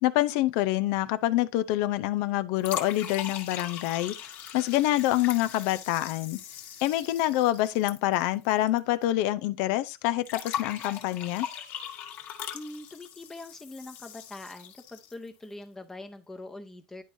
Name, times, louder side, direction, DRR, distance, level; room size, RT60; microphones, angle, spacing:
voice 1, 0.0-4.1 4.5-6.4 6.8-11.5, left 15 dB, 75° left, 0.7 m, -26 dB
sound 1, 2.6-8.8 9.0-9.1 10.3-15.3, left 9 dB, 55° left, 1.6 m, -39 dB
voice 2, 12.5-17.0, left 2 dB, 10° left, 0.8 m, -43 dB
10.5 x 4.6 x 2.7 m
cardioid pair, 130°, 4 cm